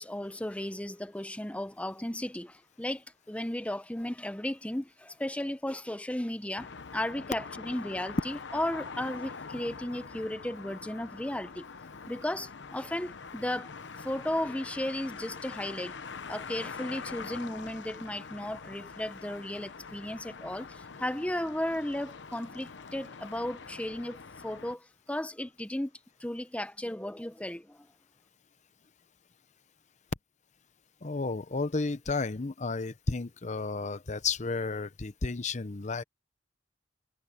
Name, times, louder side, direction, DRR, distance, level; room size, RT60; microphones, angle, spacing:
voice 1, 0.0-11.7 12.1-13.7 14.0-15.9 16.3-25.9 26.2-27.8, left 1 dB, 5° left, 0.8 m, -35 dB
sound 1, 6.5-24.7, left 5 dB, 75° left, 0.9 m, -44 dB
voice 2, 31.0-36.0, left 4 dB, 40° left, 0.8 m, -32 dB
head